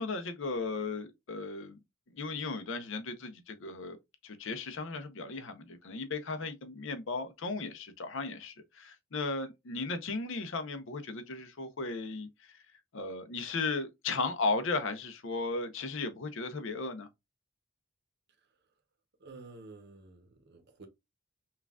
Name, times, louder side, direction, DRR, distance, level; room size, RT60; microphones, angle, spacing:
voice 1, 0.0-1.8 2.1-4.0 4.2-12.6 12.9-17.1, left 3 dB, 65° left, 0.7 m, -36 dB
voice 2, 19.2-20.9, right 3 dB, 55° right, 0.8 m, -51 dB
5.7 x 2.4 x 2.3 m
head